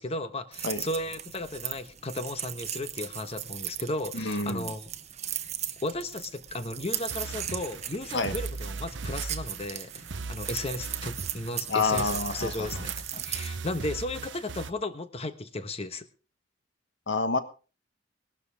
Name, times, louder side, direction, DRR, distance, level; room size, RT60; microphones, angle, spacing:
voice 1, 0.0-4.9 5.8-16.1, left 2 dB, 30° left, 11 dB, 1.2 m, -35 dB
sound 1, 0.5-13.5, right 10 dB, 35° right, 1.1 m, -38 dB
voice 2, 4.1-4.7 8.1-8.3 11.7-12.8 13.1-13.2 17.1-17.4, left 3 dB, 70° left, 10 dB, 1.5 m, -28 dB
sound 2, 6.9-14.7, right 4 dB, 70° right, 0.8 m, -38 dB
19.0 x 12.0 x 3.5 m, 0.34 s
head